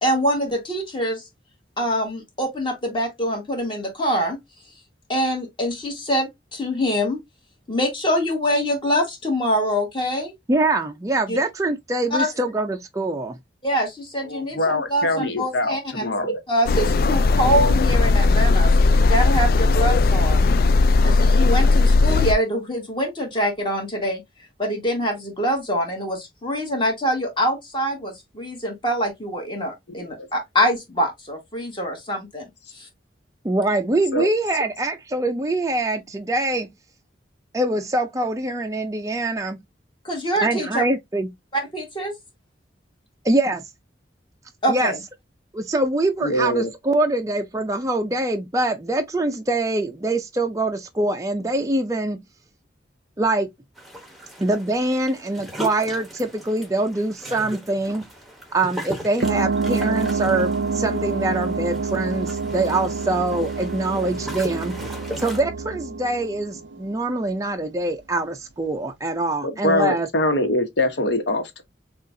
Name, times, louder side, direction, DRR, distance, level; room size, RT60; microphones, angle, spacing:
voice 1, 0.0-1.2 1.8-4.4 5.1-7.2 7.7-10.3 11.3-11.4 12.1-12.3 13.6-16.1 16.5-20.5 21.0-24.2 24.6-32.5 32.7-32.9 40.1-40.8 41.5-42.1 44.6-45.0, equal, 25° left, 1.7 m, -24 dB
voice 2, 10.5-13.4 33.4-36.7 37.5-39.6 40.4-41.3 43.2-43.6 44.7-44.9 45.5-52.2 53.2-53.5 54.4-58.1 58.5-64.9 65.2-70.1, right 2 dB, 20° right, 0.4 m, -24 dB
voice 3, 14.2-16.4 30.2-30.3 34.1-34.3 46.2-46.7 69.6-71.6, left 1 dB, 70° left, 1.1 m, -23 dB
sound 1, 16.7-22.3, left 3 dB, 50° left, 0.3 m, -17 dB
sound 2, 53.8-65.4, right 1 dB, ahead, 1.0 m, -38 dB
sound 3, 59.2-67.4, right 4 dB, 80° right, 0.6 m, -27 dB
6.4 x 2.4 x 2.7 m
head